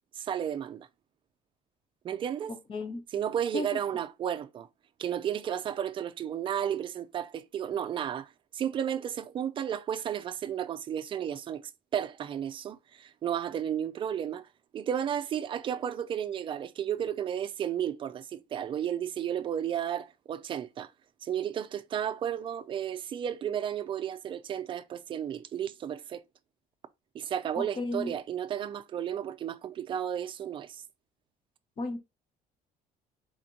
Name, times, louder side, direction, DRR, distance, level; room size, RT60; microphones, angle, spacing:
voice 1, 0.2-0.9 2.0-2.6 3.1-4.7 5.0-11.6 11.9-14.5 14.7-20.9 21.2-26.2 27.1-30.8, right 9 dB, 35° right, 0.4 m, -33 dB
voice 2, 2.7-3.0 3.5-3.7 27.8-28.1 31.8-32.0, left 2 dB, 35° left, 1.1 m, -33 dB
4.2 x 3.0 x 3.8 m
cardioid pair, 155°, 15 cm